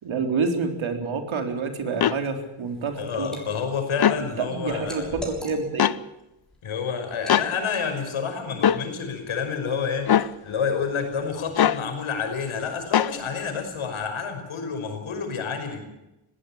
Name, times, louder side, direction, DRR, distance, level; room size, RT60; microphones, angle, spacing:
voice 1, 0.0-3.4 4.4-5.9, right 4 dB, 70° right, 5 dB, 3.9 m, -28 dB
sound 1, 2.0-2.2 3.9-4.2 5.8-6.0 7.3-7.5 8.6-8.8 10.1-10.3 11.6-11.8 12.9-13.1, left 10 dB, 50° left, 0.8 m, -20 dB
Liquid, 2.6-3.4 3.8-5.9 6.4-6.6 7.1-7.4, equal, ahead, 6.7 m, -40 dB
voice 2, 3.0-5.2 6.6-10.1 10.4-15.8, left 6 dB, 80° left, 6 dB, 5.8 m, -29 dB
21.0 x 16.5 x 8.7 m, 0.96 s
wide cardioid pair, 105°, 49 cm